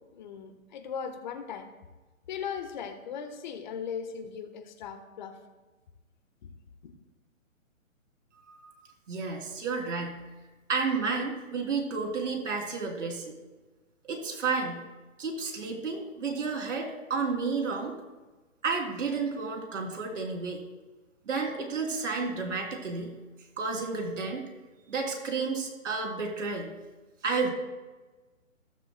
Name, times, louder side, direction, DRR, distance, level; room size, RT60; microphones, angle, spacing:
voice 1, 0.1-1.7 2.3-5.4, left 7 dB, 35° left, 7 dB, 1.2 m, -38 dB
voice 2, 9.1-10.2 10.7-13.3 14.0-14.8 15.2-17.9 18.6-20.6 21.3-23.1 23.6-24.4 24.9-26.7 27.2-27.5, right 4 dB, 60° right, 2 dB, 3.2 m, -31 dB
15.5 x 13.5 x 2.2 m, 1.2 s
hypercardioid pair, 150°, 41 cm